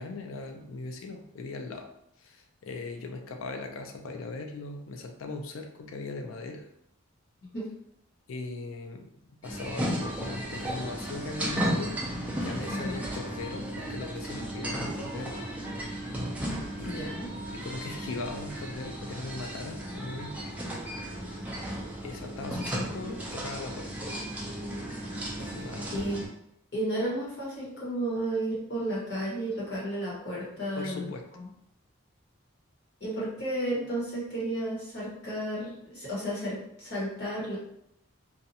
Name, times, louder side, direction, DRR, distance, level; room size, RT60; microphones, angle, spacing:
voice 1, 0.0-1.9 2.2-6.6 8.3-9.1 9.4-12.0 12.4-15.4 16.8-17.3 17.5-20.5 22.0-23.9 25.4-25.9 30.8-31.2, left 3 dB, 80° left, 4 dB, 0.4 m, -39 dB
sound 1, 9.4-26.3, right 1 dB, 10° right, 0.4 m, -35 dB
voice 2, 12.7-13.1 16.8-17.3 25.9-26.2 26.7-31.5 33.0-37.6, right 1 dB, 55° left, -7 dB, 1.2 m, -33 dB
2.7 x 2.3 x 2.7 m, 0.74 s
head